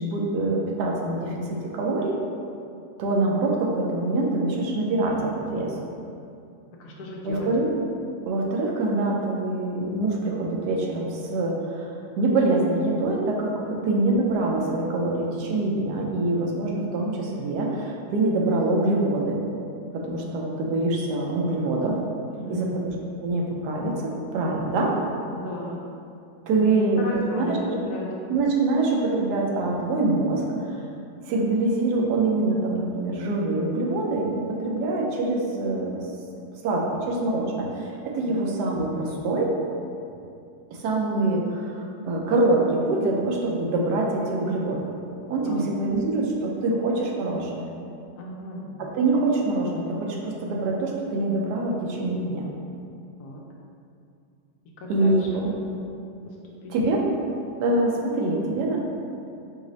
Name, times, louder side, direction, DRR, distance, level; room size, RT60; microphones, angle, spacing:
voice 1, 0.0-2.2 3.0-5.7 7.2-7.7 8.2-11.9 12.2-19.4 19.9-22.0 22.5-22.9 23.2-24.9 26.5-27.6 28.3-30.8 31.3-36.0 36.6-39.5 40.7-44.8 45.3-47.6 48.8-52.4 54.9-55.5 56.7-57.1 57.6-58.8, right 2 dB, 90° right, -2 dB, 1.2 m, -25 dB
voice 2, 6.8-7.5 13.6-13.7 22.3-22.8 25.3-25.8 26.6-28.1 38.3-38.4 45.5-45.7 48.2-48.8 53.2-53.4 54.8-55.3 56.6-56.7, left 1 dB, 75° left, -2 dB, 1.1 m, -35 dB
5.0 x 2.0 x 3.9 m, 2.5 s
omnidirectional pair, 1.7 m